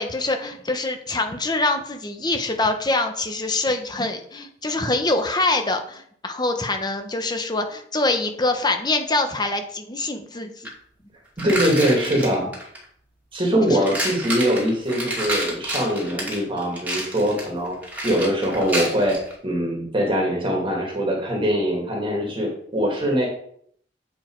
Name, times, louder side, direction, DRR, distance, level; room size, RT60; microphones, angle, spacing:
voice 1, 0.0-10.5 12.0-12.1 13.7-13.8, left 2 dB, 25° left, 6 dB, 1.0 m, -24 dB
sound 1, 10.6-10.7 11.4-12.8 13.7-19.3, right 1 dB, 10° right, 2.3 m, -29 dB
voice 2, 11.4-12.5 13.3-17.8 18.0-19.2 19.4-23.3, equal, 30° right, -1 dB, 2.1 m, -22 dB
8.2 x 5.1 x 4.6 m, 0.64 s
head